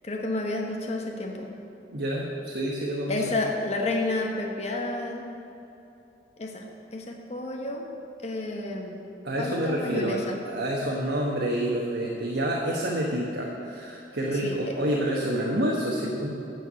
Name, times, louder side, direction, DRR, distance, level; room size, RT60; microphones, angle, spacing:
voice 1, 0.0-1.5 3.1-5.3 6.4-6.6 6.9-7.9 8.2-9.0 9.4-10.4 14.4-14.6, left 2 dB, 40° left, 0 dB, 1.1 m, -30 dB
voice 2, 1.9-3.4 9.2-16.3, right 1 dB, 75° right, -3 dB, 1.2 m, -28 dB
13.0 x 4.6 x 8.3 m, 2.8 s
head